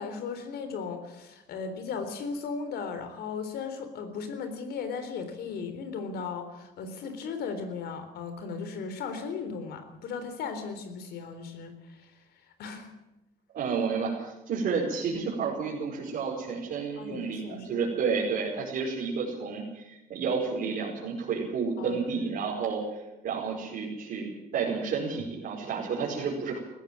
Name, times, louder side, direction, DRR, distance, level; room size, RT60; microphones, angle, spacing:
voice 1, 0.0-12.2 12.6-12.9 17.0-17.9 21.8-22.3, left 5 dB, 70° left, 8 dB, 3.8 m, -37 dB
voice 2, 13.5-26.6, right 5 dB, 65° right, -5 dB, 5.4 m, -31 dB
19.5 x 15.0 x 8.9 m, 0.95 s
cardioid pair, 110°, 17 cm